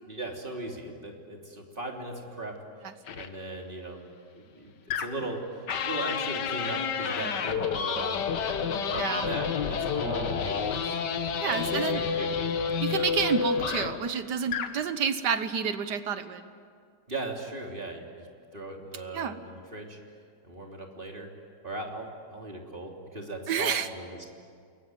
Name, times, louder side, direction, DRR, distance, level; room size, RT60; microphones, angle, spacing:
voice 1, 0.1-2.5 3.1-4.0 4.3-11.0 11.4-12.3 12.7-13.0 17.1-18.3 18.5-20.0 20.4-21.3 21.6-24.3, right 2 dB, 30° right, 1 dB, 3.4 m, -38 dB
sound 1, 3.1-3.3 4.9-5.3 5.7-14.1 14.5-14.8, left 6 dB, 90° left, 1.9 m, -30 dB
voice 2, 9.0-9.3 11.3-12.0 12.8-16.5 19.1-19.4 23.5-23.9, right 7 dB, 80° right, 11 dB, 1.8 m, -29 dB
28.0 x 22.0 x 9.4 m, 2.2 s
omnidirectional pair, 1.8 m